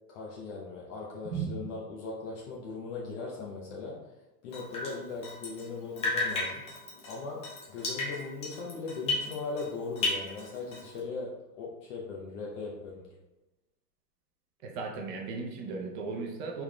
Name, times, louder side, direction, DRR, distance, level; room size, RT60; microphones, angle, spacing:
voice 1, 0.1-4.0 4.4-6.6 7.1-13.1, left 4 dB, 50° left, -3 dB, 0.8 m, -39 dB
voice 2, 1.2-1.5 14.6-16.6, right 4 dB, 35° right, 1 dB, 0.7 m, -36 dB
Drip, 4.5-5.7 6.0-9.7 10.0-11.0, left 2 dB, 15° left, 0.5 m, -34 dB
4.5 x 3.6 x 2.3 m, 1.0 s
hypercardioid pair, 120°, 49 cm